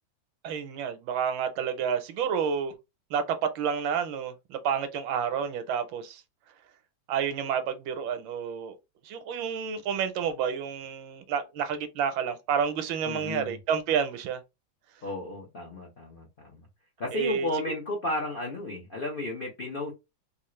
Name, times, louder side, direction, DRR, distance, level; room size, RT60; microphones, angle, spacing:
voice 1, 0.4-2.7 3.1-3.2 3.5-6.2 7.1-8.8 9.0-14.4 17.1-17.5, right 7 dB, 80° right, 1.4 m, -29 dB
voice 2, 13.0-13.6 15.0-16.6 17.0-19.9, left 2 dB, 85° left, 0.4 m, -33 dB
3.5 x 2.4 x 3.0 m
omnidirectional pair, 2.1 m